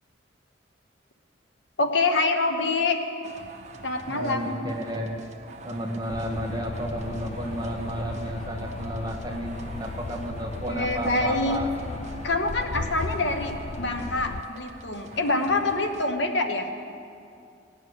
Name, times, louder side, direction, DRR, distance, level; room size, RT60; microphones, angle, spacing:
voice 1, 1.8-3.0 3.8-4.6 10.7-11.6 12.2-16.7, left 2 dB, 70° left, 5 dB, 1.1 m, -26 dB
sound 1, 3.2-16.1, right 3 dB, 40° right, 0.9 m, -45 dB
voice 2, 4.0-5.3 5.6-11.7, right 1 dB, 20° right, -1 dB, 1.9 m, -32 dB
sound 2, 6.1-14.4, left 3 dB, 35° left, 0.4 m, -36 dB
18.0 x 6.2 x 9.8 m, 2.5 s
head